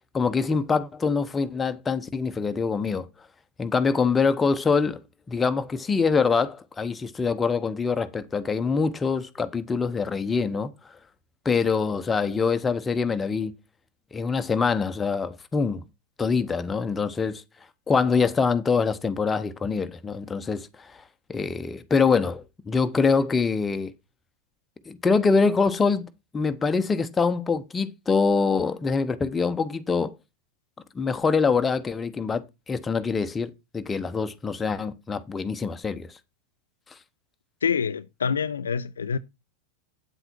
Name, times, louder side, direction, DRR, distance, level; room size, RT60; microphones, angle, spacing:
voice 1, 0.1-3.1 3.6-5.0 5.3-10.7 11.4-13.5 14.1-15.8 16.2-17.4 17.9-21.0 21.3-23.9 24.9-30.1 30.9-36.1, left 5 dB, 15° left, 1.1 m, -24 dB
voice 2, 37.6-39.2, left 6 dB, 70° left, 0.5 m, -26 dB
9.1 x 8.0 x 4.5 m
figure-of-eight pair, 90°, 0 cm